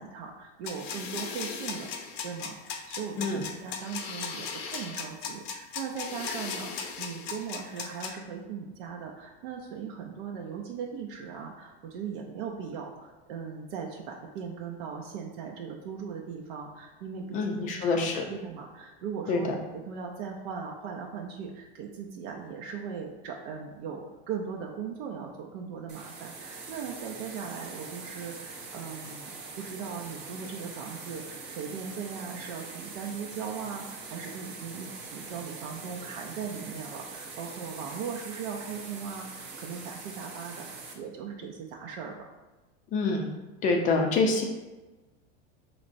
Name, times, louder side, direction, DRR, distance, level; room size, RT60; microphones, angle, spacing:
voice 1, 0.0-1.9 2.2-42.3, right 6 dB, 75° right, 0 dB, 0.6 m, -39 dB
sound 1, 0.6-8.1, left 6 dB, 90° left, 0.7 m, -37 dB
voice 2, 17.3-18.2 19.3-19.4 42.9-43.3 43.6-44.4, left 3 dB, 25° left, 2 dB, 0.4 m, -26 dB
sound 2, 25.9-40.9, right 4 dB, 35° right, 0.6 m, -43 dB
5.0 x 3.2 x 2.5 m, 1.2 s
supercardioid pair, 155°, 31 cm